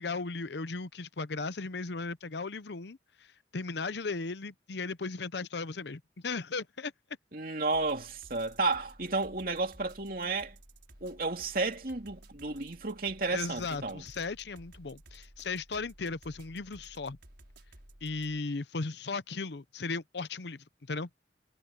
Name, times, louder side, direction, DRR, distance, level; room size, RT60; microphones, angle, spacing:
voice 1, 0.0-3.3 3.5-6.9 13.3-17.2 18.0-21.1, left 4 dB, 70° left, 0.7 m, -36 dB
voice 2, 7.3-10.6 11.0-14.0, right 3 dB, 50° right, 2.8 m, -32 dB
sound 1, 7.7-18.4, right 1 dB, 70° right, 5.8 m, -55 dB
head